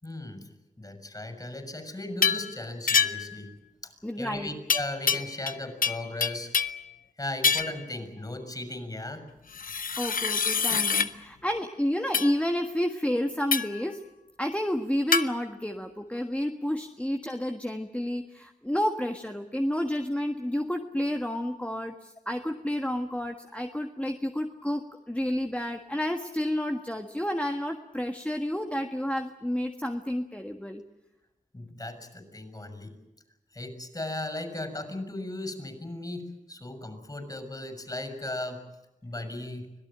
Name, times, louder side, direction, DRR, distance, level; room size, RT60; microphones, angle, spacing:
voice 1, 0.0-0.5 0.8-3.6 3.8-3.9 4.2-6.5 7.2-9.3 31.5-33.0 33.5-38.7 39.0-39.7, left 1 dB, 25° left, 8 dB, 6.6 m, -37 dB
sound 1, 2.2-2.5 2.9-3.4 4.7-5.6 5.8-6.8 7.4-7.8 9.5-11.1 12.1-12.3 13.5-13.8 15.1-15.3, left 6 dB, 75° left, 0.9 m, -26 dB
voice 2, 4.0-4.5 10.0-14.0 14.4-30.8, equal, 10° left, 4 dB, 1.6 m, -30 dB
25.5 x 17.5 x 8.9 m, 0.94 s
cardioid pair, 55°, 14 cm